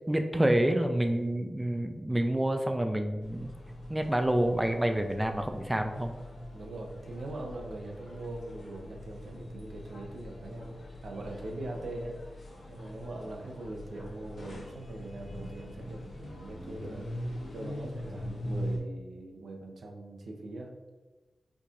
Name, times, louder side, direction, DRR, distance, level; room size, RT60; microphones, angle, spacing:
voice 1, 0.1-3.5 3.9-6.1, right 1 dB, 15° right, 5 dB, 0.3 m, -28 dB
sound 1, 3.2-18.8, left 1 dB, 80° left, 1.0 m, -42 dB
voice 2, 6.5-12.2 12.7-20.7, right 2 dB, 80° right, 1 dB, 0.6 m, -42 dB
4.5 x 2.4 x 2.8 m, 1.2 s
cardioid pair, 50°, 0 cm